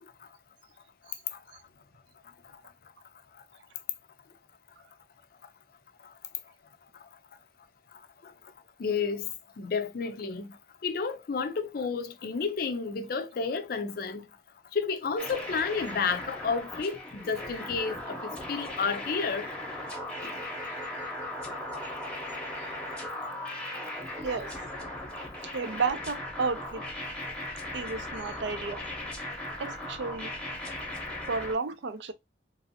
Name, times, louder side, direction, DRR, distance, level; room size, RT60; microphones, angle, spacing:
voice 1, 8.8-9.3 9.6-10.5 10.8-14.3 14.7-19.5 20.2-20.4, left 5 dB, 50° left, 0.4 m, -31 dB
sound 1, 15.2-31.5, left 1 dB, 5° left, 0.8 m, -38 dB
voice 2, 24.2-24.6 25.5-26.8 27.7-28.8 29.6-30.3 31.3-32.1, right 4 dB, 75° right, 0.5 m, -32 dB
2.9 x 2.6 x 2.7 m
head